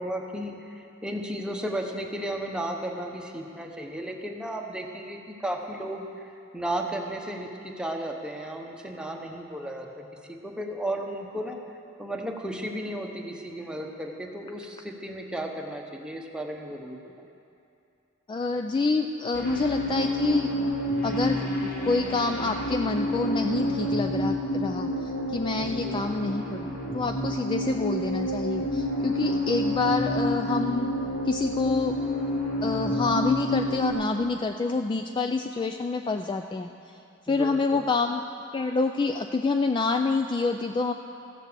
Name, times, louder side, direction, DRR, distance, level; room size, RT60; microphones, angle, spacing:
voice 1, 0.0-6.1 6.5-11.6 12.0-17.0 25.6-26.1 37.3-37.9, right 1 dB, 5° right, 1 dB, 0.9 m, -34 dB
voice 2, 18.3-20.5 21.0-30.9 31.3-31.9 32.6-36.7 37.3-38.2 38.5-40.9, left 3 dB, 25° left, 5 dB, 0.3 m, -27 dB
sound 1, 19.3-33.9, equal, 70° left, 3.0 m, -29 dB
15.0 x 7.4 x 6.8 m, 2.6 s
head